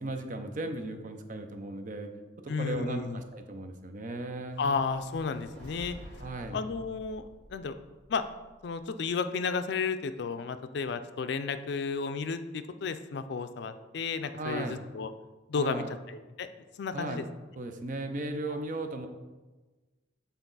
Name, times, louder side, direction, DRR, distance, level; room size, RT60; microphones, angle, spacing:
voice 1, 0.0-2.1 2.4-4.6 6.2-6.6 14.4-14.8 15.6-15.9 16.9-17.3 17.6-19.1, right 2 dB, 45° right, 7 dB, 0.6 m, -36 dB
voice 2, 2.5-3.2 4.6-6.0 6.5-7.2 7.5-7.7 8.1-8.2 8.6-15.1 15.5-15.8 16.1-16.5 16.8-17.2, left 5 dB, 65° left, 10 dB, 0.4 m, -32 dB
sound 1, 4.4-8.7, equal, 70° right, 2.1 m, -50 dB
8.2 x 4.0 x 3.9 m, 1.2 s
head